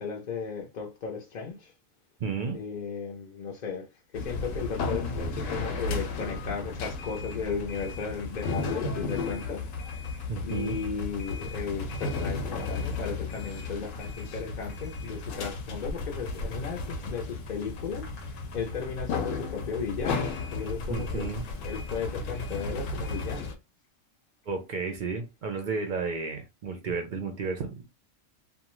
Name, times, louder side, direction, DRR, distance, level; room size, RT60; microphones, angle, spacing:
voice 1, 0.0-1.7 2.5-9.7 9.9-21.3 21.6-23.5, left 5 dB, 50° left, 0.5 m, -35 dB
voice 2, 2.2-2.6 10.3-10.8 20.9-21.4 24.5-27.8, right 4 dB, 60° right, 0.5 m, -32 dB
sound 1, 4.1-23.6, left 3 dB, 80° left, 0.9 m, -34 dB
2.6 x 2.2 x 2.9 m
omnidirectional pair, 1.3 m